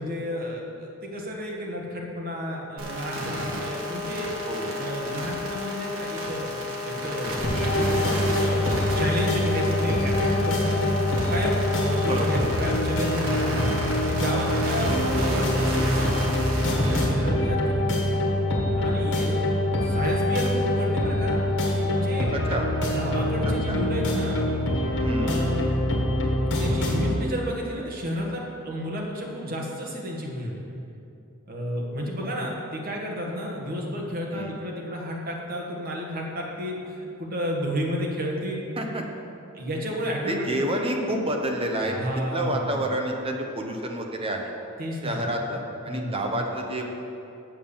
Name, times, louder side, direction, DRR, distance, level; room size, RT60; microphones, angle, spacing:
voice 1, 0.0-4.3 4.8-6.5 6.8-10.9 11.3-13.7 14.1-16.0 16.7-18.0 18.8-19.4 19.8-21.4 21.8-22.3 22.8-24.4 25.2-25.7 26.6-30.6 31.5-38.7 39.5-40.6 41.8-42.9 44.8-45.3 45.9-46.2, equal, 45° right, -1 dB, 1.5 m, -31 dB
sound 1, 2.8-17.0, left 1 dB, 60° right, 1.8 m, -31 dB
voice 2, 4.5-4.8 12.1-12.4 22.3-22.7 23.4-23.8 25.0-25.3 34.3-34.5 38.8-39.0 40.3-44.5 45.0-46.9, right 1 dB, 25° right, 1 dB, 0.9 m, -29 dB
sound 2, 7.4-27.1, left 1 dB, 55° left, 1.8 m, -25 dB
7.5 x 7.2 x 7.0 m, 2.7 s
head